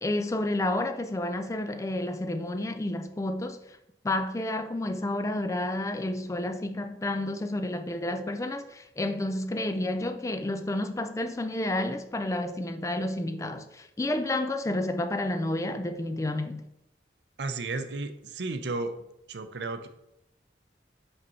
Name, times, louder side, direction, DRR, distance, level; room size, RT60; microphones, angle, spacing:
voice 1, 0.0-3.8 4.0-16.6, left 1 dB, 15° left, 0.3 m, -30 dB
voice 2, 17.4-18.9 19.3-19.9, right 3 dB, 70° right, 0.6 m, -33 dB
5.3 x 4.2 x 5.5 m
head